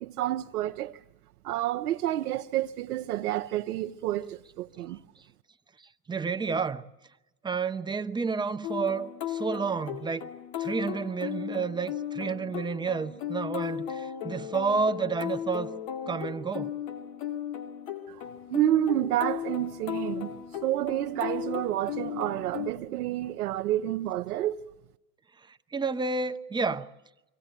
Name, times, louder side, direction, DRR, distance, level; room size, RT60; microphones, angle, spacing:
voice 1, 0.0-1.0 1.4-5.0 18.1-18.2 18.5-24.6, right 13 dB, 80° right, 0.8 m, -29 dB
voice 2, 6.1-6.8 7.4-10.3 10.6-15.7 16.1-16.7 25.5-26.9, right 5 dB, 10° right, 0.8 m, -30 dB
sound 1, 8.6-22.7, left 9 dB, 60° left, 2.2 m, -36 dB
25.0 x 16.0 x 9.1 m
hypercardioid pair, 115°, 45 cm